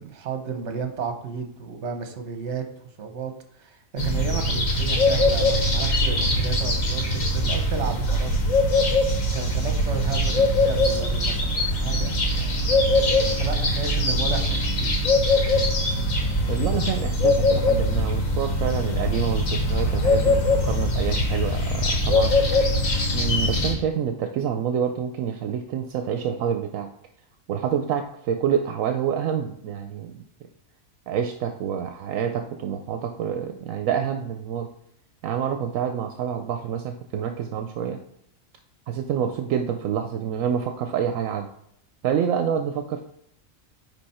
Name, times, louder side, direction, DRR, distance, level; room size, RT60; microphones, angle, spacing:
voice 1, 0.0-8.4 9.3-12.7 13.3-15.1, right 6 dB, 60° right, 6 dB, 1.2 m, -33 dB
sound 1, 4.0-23.7, left 1 dB, 75° left, 1.9 m, -22 dB
voice 2, 16.5-22.3 23.1-26.9 27.5-30.2 31.1-34.7 35.2-38.0 38.9-41.5 42.0-43.0, right 8 dB, 75° right, 6 dB, 1.0 m, -27 dB
9.9 x 3.4 x 4.3 m, 0.74 s
omnidirectional pair, 1.4 m